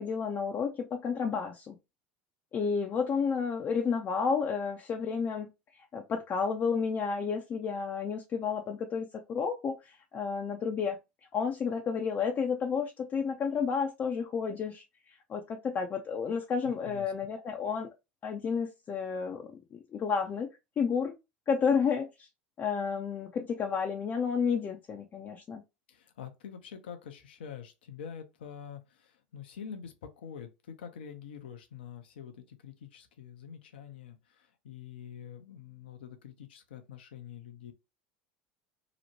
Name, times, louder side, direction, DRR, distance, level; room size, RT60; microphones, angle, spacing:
voice 1, 0.0-1.8 2.5-11.0 11.3-17.9 18.2-20.5 20.8-21.1 21.5-22.3 22.6-25.6, left 6 dB, 35° left, 0.5 m, -31 dB
voice 2, 16.6-17.1 25.9-37.7, left 8 dB, 80° left, 0.6 m, -46 dB
2.9 x 2.1 x 2.7 m
hypercardioid pair, 80°, 5 cm